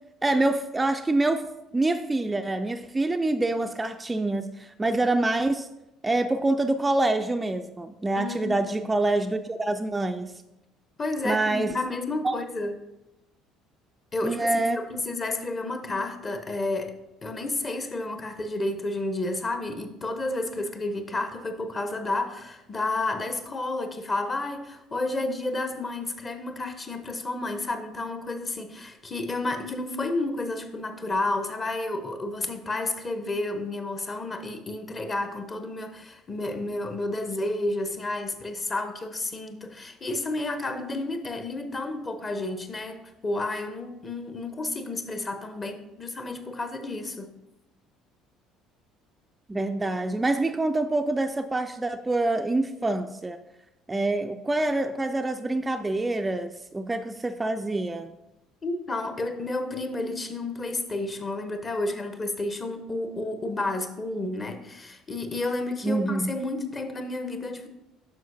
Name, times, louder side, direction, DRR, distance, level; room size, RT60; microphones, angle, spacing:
voice 1, 0.2-1.5 1.7-5.7 6.0-10.3 11.2-11.7 12.2-12.4 14.2-14.8 49.5-53.4 53.9-58.1 65.8-66.3, right 2 dB, 15° right, 7 dB, 0.3 m, -26 dB
voice 2, 8.1-8.7 11.0-12.7 14.1-47.4 58.6-67.7, left 2 dB, 30° left, 7 dB, 0.8 m, -31 dB
9.1 x 6.3 x 2.7 m, 0.94 s
figure-of-eight pair, 55°, 0 cm